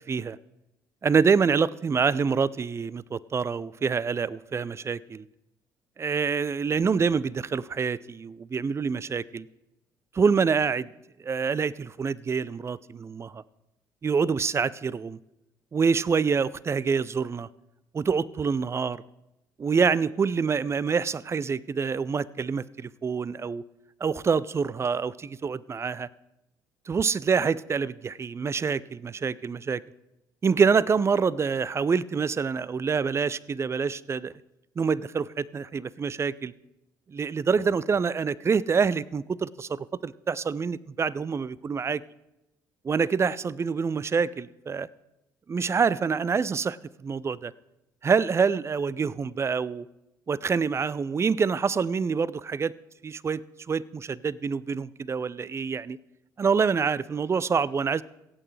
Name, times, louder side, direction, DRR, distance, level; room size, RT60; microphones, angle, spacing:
voice 1, 1.0-5.2 6.0-9.5 10.1-10.9 11.2-13.4 14.0-15.2 15.7-17.5 17.9-19.0 19.6-23.6 24.0-26.1 26.9-29.8 30.4-34.3 34.8-36.5 37.1-42.0 42.8-44.9 45.5-47.5 48.0-49.8 50.3-52.7 53.0-56.0 56.4-58.0, right 5 dB, 25° right, 21 dB, 0.4 m, -26 dB
23.5 x 8.7 x 3.3 m, 0.94 s
figure-of-eight pair, 50°, 10 cm